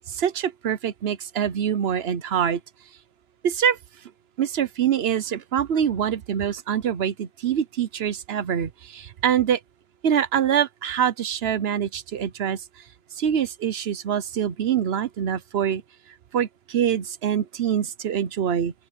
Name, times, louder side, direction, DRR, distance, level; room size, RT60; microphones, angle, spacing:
voice 1, 0.1-2.6 3.4-3.8 4.4-9.6 10.0-12.8 13.1-15.8 16.3-18.7, right 8 dB, 55° right, 0.8 m, -25 dB
open air
omnidirectional pair, 1.6 m